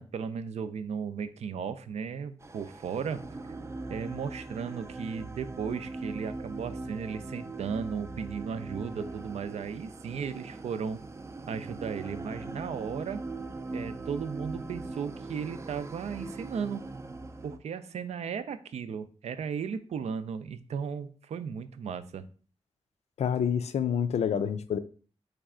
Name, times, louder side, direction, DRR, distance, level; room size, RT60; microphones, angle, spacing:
voice 1, 0.0-3.2 3.9-11.0 11.5-13.2 13.7-16.8 17.4-22.3, right 6 dB, 90° right, 0.4 m, -35 dB
sound 1, 2.4-17.6, right 3 dB, 25° right, 0.3 m, -40 dB
voice 2, 23.2-24.8, left 8 dB, 85° left, 0.4 m, -28 dB
4.1 x 3.3 x 3.6 m
wide cardioid pair, 115°, 11 cm